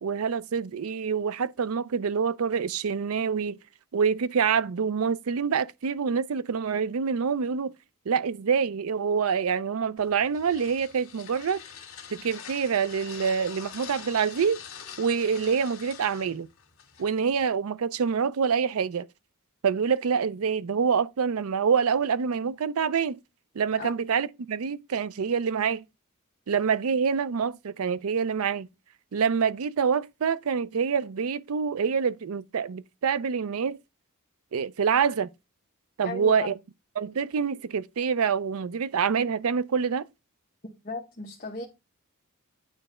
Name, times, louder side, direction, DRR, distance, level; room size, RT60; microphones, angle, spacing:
voice 1, 0.0-3.6 3.9-7.7 8.1-11.6 12.1-14.6 15.0-16.5 17.0-19.1 19.6-23.2 23.6-25.8 26.5-28.7 29.1-33.8 34.5-35.3 36.0-36.5 37.0-40.0, right 6 dB, 75° right, 0.5 m, -26 dB
sound 1, 10.0-17.5, left 8 dB, 70° left, 1.7 m, -45 dB
voice 2, 36.0-36.5 40.6-41.7, left 3 dB, 40° left, 1.0 m, -36 dB
9.1 x 3.3 x 4.9 m
head